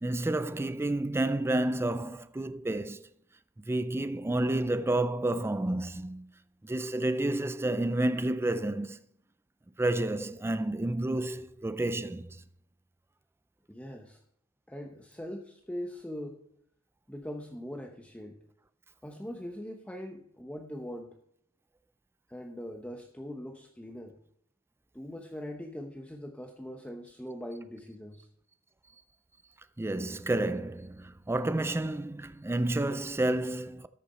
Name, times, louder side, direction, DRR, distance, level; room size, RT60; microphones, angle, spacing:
voice 1, 0.0-3.1 3.7-6.3 6.6-9.0 9.8-12.4 29.8-33.9, right 1 dB, 10° right, 0.4 m, -30 dB
voice 2, 13.7-14.2 14.7-16.4 17.1-18.4 19.0-21.1 22.3-24.2 24.9-28.3, equal, 5° left, 0.9 m, -41 dB
13.5 x 7.0 x 4.2 m
head